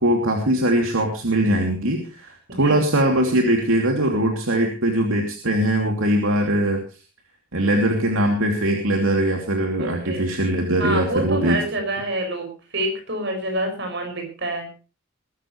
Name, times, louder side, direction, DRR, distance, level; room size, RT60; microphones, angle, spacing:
voice 1, 0.0-6.8 7.5-11.6, right 1 dB, 75° right, 2 dB, 2.8 m, -21 dB
voice 2, 2.5-2.8 9.8-10.3 10.8-14.7, right 1 dB, 55° right, 4 dB, 6.4 m, -27 dB
21.5 x 12.5 x 3.2 m, 0.34 s
head